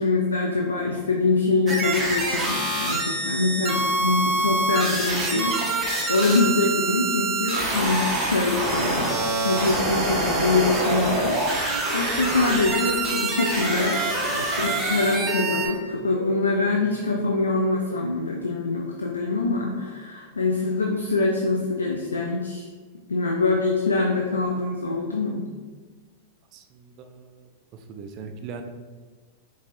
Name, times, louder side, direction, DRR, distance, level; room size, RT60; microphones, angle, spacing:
voice 1, 0.0-9.2 9.4-14.0 14.3-22.7 23.1-25.5, left 3 dB, 80° left, 0 dB, 0.4 m, -24 dB
sound 1, 1.7-15.7, right 2 dB, 15° right, 1.0 m, -25 dB
sound 2, 11.5-14.4 14.7-18.2, right 1 dB, 85° right, 0.8 m, -38 dB
voice 2, 26.5-28.6, right 5 dB, 40° right, 6 dB, 0.4 m, -41 dB
5.1 x 3.2 x 2.6 m, 1.5 s
figure-of-eight pair, 95°, 0 cm